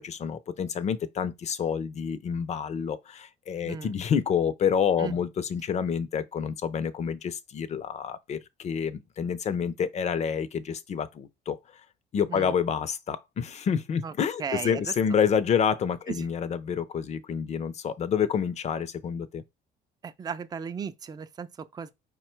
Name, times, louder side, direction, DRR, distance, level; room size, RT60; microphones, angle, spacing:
voice 1, 0.0-11.6 12.1-19.4, left 7 dB, 40° left, 0.5 m, -28 dB
voice 2, 14.4-14.9 16.1-16.3 20.0-21.9, right 6 dB, 25° right, 0.4 m, -36 dB
4.8 x 2.2 x 4.4 m
cardioid pair, 110°, 17 cm